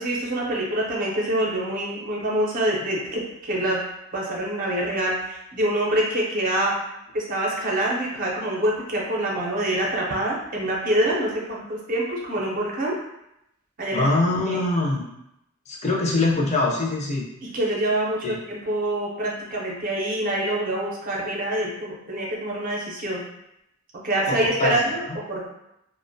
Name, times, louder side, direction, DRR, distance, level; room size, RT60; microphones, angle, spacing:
voice 1, 0.0-3.8 4.1-6.7 7.1-12.9 13.8-14.1 14.5-14.6 17.5-23.2 24.0-25.0 25.3-25.5, right 1 dB, 40° right, -3 dB, 0.5 m, -25 dB
voice 2, 13.9-15.0 15.7-17.2 18.2-18.4 24.3-24.8 25.1-25.2, left 2 dB, 30° left, -3 dB, 0.5 m, -23 dB
2.4 x 2.1 x 2.6 m, 0.83 s
head